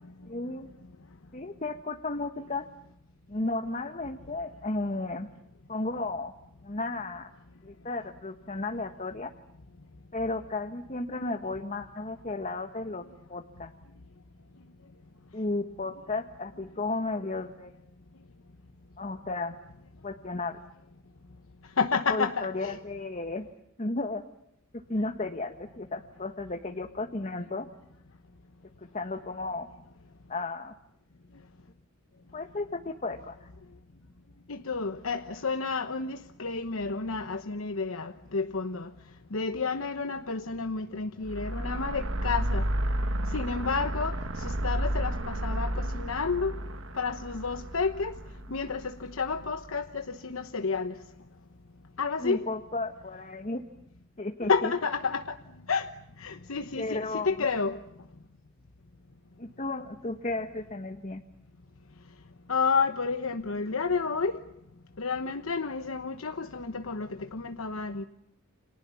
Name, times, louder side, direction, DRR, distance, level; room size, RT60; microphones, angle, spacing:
voice 1, 0.3-0.7 1.3-2.7 3.3-5.3 5.7-6.3 6.6-7.3 7.6-9.3 10.1-13.0 13.3-13.7 15.3-17.7 19.0-19.5 20.0-20.6 22.1-23.5 23.8-24.2 24.7-27.7 28.8-29.7 30.3-30.7 32.3-33.5 52.2-53.6 54.2-54.7 56.7-57.3 59.4-61.2, left 2 dB, 35° left, 5 dB, 1.4 m, -34 dB
voice 2, 21.8-22.8 34.5-38.9 39.3-42.6 43.3-46.5 46.9-48.2 48.5-51.0 52.0-52.5 54.5-55.4 55.7-55.9 56.2-57.8 62.5-64.4 65.0-68.0, left 4 dB, 85° left, 7 dB, 1.1 m, -30 dB
sound 1, 41.3-49.6, right 1 dB, 65° right, 1.6 m, -32 dB
30.0 x 27.0 x 7.1 m, 0.78 s
head